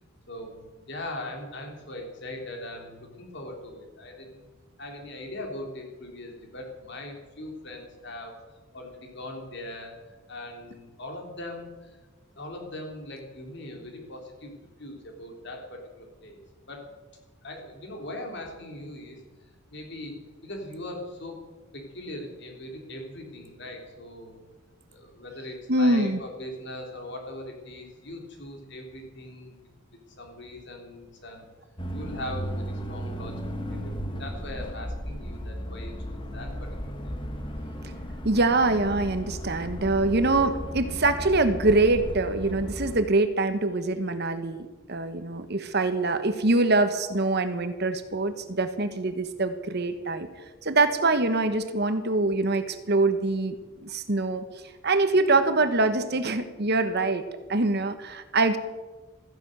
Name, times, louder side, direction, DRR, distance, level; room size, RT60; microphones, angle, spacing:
voice 1, 0.3-4.4 4.8-8.3 8.7-12.0 12.4-16.4 16.7-17.0 17.4-19.2 19.7-21.4 21.7-24.5 24.9-29.6 30.2-31.5 31.9-37.1, left 1 dB, 60° left, 2 dB, 3.6 m, -40 dB
voice 2, 25.7-26.2 38.2-50.3 50.6-53.5 53.8-54.4 54.8-57.2 57.5-58.6, right 2 dB, 55° right, 10 dB, 1.2 m, -24 dB
sound 1, 31.8-43.0, equal, 25° left, 1.5 m, -35 dB
14.5 x 10.5 x 7.9 m, 1.2 s
head